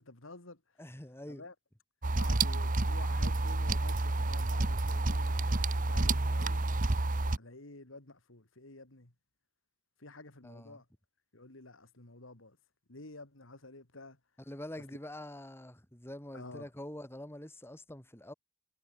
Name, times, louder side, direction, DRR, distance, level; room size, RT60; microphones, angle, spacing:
voice 1, 0.0-0.6 1.3-1.5 2.1-6.6 7.4-9.1 10.0-10.8 11.3-12.6 12.9-14.2 16.3-16.7, left 2 dB, 80° left, 3.0 m, -50 dB
voice 2, 0.8-1.4 10.4-10.8 14.5-18.3, left 1 dB, 10° left, 2.9 m, -45 dB
sound 1, 2.0-7.4, right 2 dB, 40° right, 1.2 m, -29 dB
head